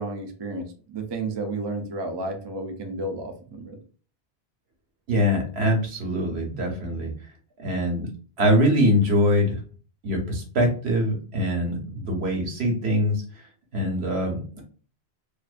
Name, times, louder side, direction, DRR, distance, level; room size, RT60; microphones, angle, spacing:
voice 1, 0.0-3.8, right 2 dB, 45° right, 4 dB, 0.3 m, -32 dB
voice 2, 5.1-7.1 7.6-8.1 8.4-9.6 10.0-13.2 13.7-14.6, equal, 80° right, 1 dB, 1.1 m, -23 dB
2.5 x 2.1 x 2.4 m, 0.38 s
omnidirectional pair, 1.1 m